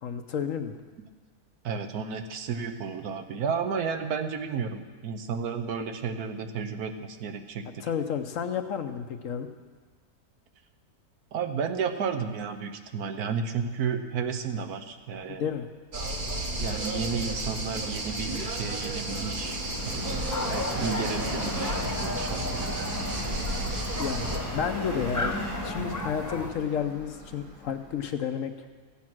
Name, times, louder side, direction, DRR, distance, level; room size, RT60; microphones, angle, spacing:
voice 1, 0.0-0.8 7.8-9.5 15.3-15.7 24.0-25.4 25.6-28.5, left 7 dB, 65° left, 8 dB, 1.0 m, -31 dB
voice 2, 1.6-7.8 11.3-15.5 16.6-19.6 19.9-20.2 20.5-22.8, right 6 dB, 75° right, 6 dB, 1.4 m, -32 dB
sound 1, 15.9-24.4, right 2 dB, 35° right, 1.2 m, -33 dB
Subway metro underground, 17.1-28.0, left 1 dB, 90° right, 5.2 m, -37 dB
sound 2, 20.3-26.5, left 2 dB, 20° left, 0.4 m, -35 dB
15.5 x 8.7 x 6.1 m, 1.4 s
omnidirectional pair, 1.7 m